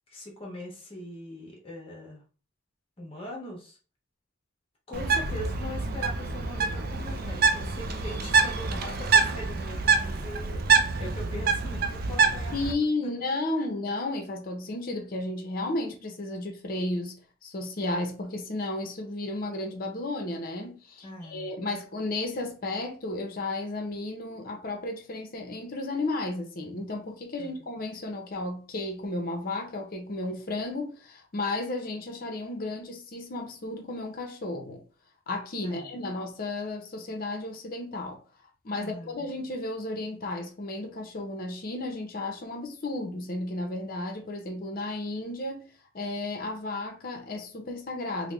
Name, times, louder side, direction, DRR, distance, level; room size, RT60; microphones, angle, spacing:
voice 1, 0.1-2.2 3.0-3.8 4.9-12.7 13.0-13.3 21.0-21.5 27.4-27.6 35.6-35.9 38.7-39.3, left 1 dB, 30° left, 1.1 m, -41 dB
Bird, 4.9-12.7, right 4 dB, 50° right, 0.4 m, -26 dB
voice 2, 12.5-17.2 17.4-34.8 35.3-38.2 38.6-45.6 45.9-48.3, left 2 dB, 50° left, 0.7 m, -33 dB
3.4 x 2.1 x 3.5 m
head